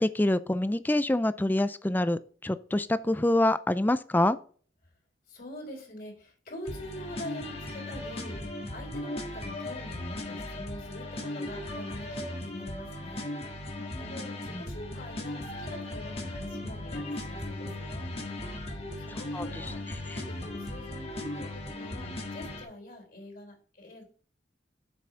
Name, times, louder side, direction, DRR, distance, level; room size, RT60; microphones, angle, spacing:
voice 1, 0.0-4.4 14.5-14.6 19.3-19.5, left 1 dB, 10° left, 14 dB, 0.4 m, -26 dB
voice 2, 5.3-13.7 14.0-18.1 19.0-24.0, left 1 dB, 55° left, 0 dB, 3.7 m, -45 dB
sound 1, 6.6-22.6, left 1 dB, 35° left, 1.7 m, -37 dB
7.7 x 5.9 x 4.4 m, 0.43 s
head